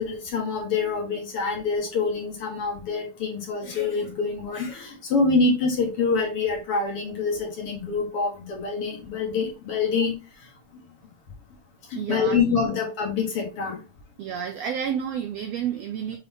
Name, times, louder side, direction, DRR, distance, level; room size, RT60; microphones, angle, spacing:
voice 1, 0.0-10.1 11.9-13.8, left 4 dB, 55° left, 2.0 m, -26 dB
voice 2, 12.0-12.6 14.2-16.2, right 8 dB, 85° right, 1.4 m, -30 dB
6.8 x 4.0 x 3.5 m
omnidirectional pair, 3.7 m